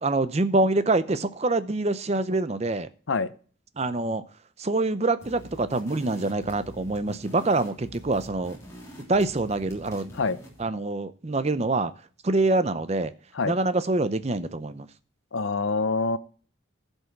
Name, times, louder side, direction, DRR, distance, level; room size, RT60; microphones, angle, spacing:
voice 1, 0.0-2.9 3.8-4.2 4.6-8.6 9.1-10.1 10.6-11.9 12.2-13.1 13.4-14.9, right 2 dB, 35° right, 13 dB, 0.6 m, -25 dB
sound 1, 5.2-10.7, right 1 dB, 15° left, 3.3 m, -45 dB
voice 2, 15.3-16.2, left 4 dB, 80° left, 14 dB, 0.7 m, -25 dB
15.0 x 5.4 x 4.6 m, 0.42 s
head